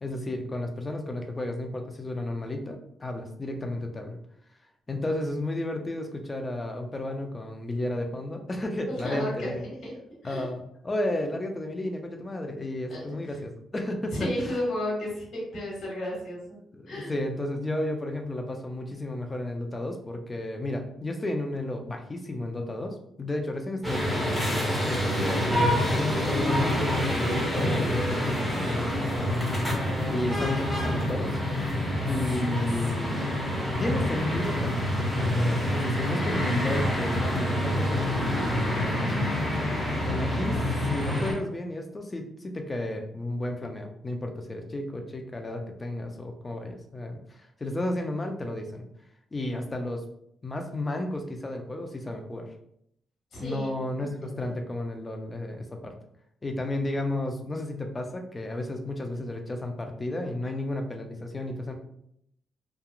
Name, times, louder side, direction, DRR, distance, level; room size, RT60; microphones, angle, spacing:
voice 1, 0.0-4.2 4.9-9.6 10.2-14.6 16.7-25.5 25.9-29.7 30.1-31.4 32.1-33.4 33.8-39.1 40.0-48.9 49.3-50.0 50.4-52.5 53.4-55.9 56.4-61.7, left 1 dB, 25° left, 4 dB, 0.4 m, -33 dB
voice 2, 8.9-9.9 10.2-10.5 12.9-13.4 14.1-16.4 16.9-17.1 53.3-53.7 54.0-54.5, left 1 dB, 70° left, -3 dB, 1.3 m, -33 dB
sound 1, 23.8-41.3, left 1 dB, 5° left, 1.1 m, -27 dB
2.9 x 2.3 x 2.3 m, 0.72 s
cardioid pair, 95°, 0 cm